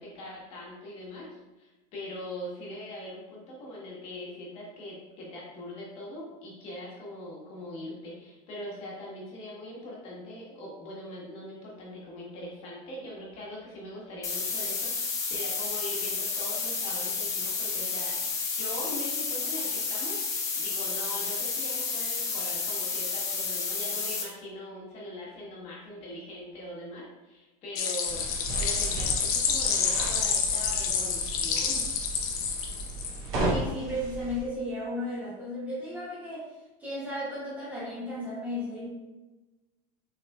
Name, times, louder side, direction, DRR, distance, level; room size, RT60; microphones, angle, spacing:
voice 1, 0.0-18.2 18.5-20.2 20.5-28.2 28.6-31.8, left 1 dB, 35° left, -4 dB, 1.3 m, -41 dB
sound 1, 14.2-24.2, left 4 dB, 15° left, 0.5 m, -31 dB
sound 2, 27.8-33.3, left 6 dB, 85° left, 0.8 m, -28 dB
sound 3, 28.0-34.4, right 2 dB, 50° right, 1.4 m, -35 dB
voice 2, 33.3-36.5 36.8-38.9, left 1 dB, 10° right, -8 dB, 0.9 m, -34 dB
6.3 x 3.4 x 2.3 m, 1.1 s
supercardioid pair, 170°, 18 cm